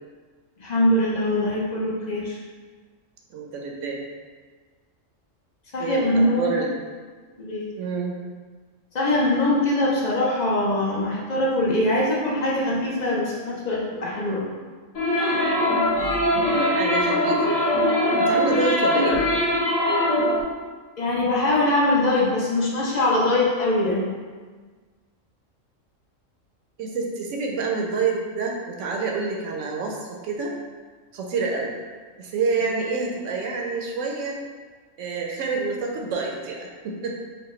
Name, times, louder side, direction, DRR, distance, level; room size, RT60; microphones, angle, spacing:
voice 1, 0.6-2.4 5.7-6.5 7.4-7.6 8.9-14.4 21.0-24.1, left 1 dB, 45° left, -5 dB, 0.6 m, -22 dB
voice 2, 3.3-4.0 5.8-6.7 7.8-8.1 16.7-17.6 18.2-19.2 26.8-30.5 31.1-31.7 32.2-34.4 35.0-37.1, right 4 dB, 70° right, 0 dB, 0.9 m, -27 dB
sound 1, 14.9-20.4, left 1 dB, 80° left, 1.5 m, -21 dB
4.2 x 2.2 x 3.1 m, 1.5 s
omnidirectional pair, 1.4 m